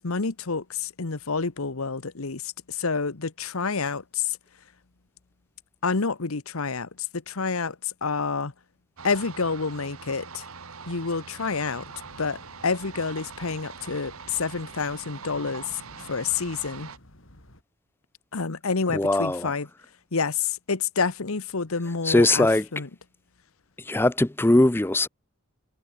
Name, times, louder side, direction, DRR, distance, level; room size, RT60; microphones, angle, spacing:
voice 1, 0.0-4.4 5.8-8.5 9.0-10.4 10.9-11.9 12.2-16.9 18.3-19.7 20.1-22.5 22.7-22.9, left 4 dB, 85° left, 1.1 m, -28 dB
sound 1, 9.0-17.0, right 5 dB, 85° right, 1.8 m, -43 dB
sound 2, 11.7-17.6, left 1 dB, 65° left, 4.7 m, -53 dB
voice 2, 18.9-19.5 22.0-22.6 23.9-25.1, left 1 dB, 10° left, 0.4 m, -20 dB
head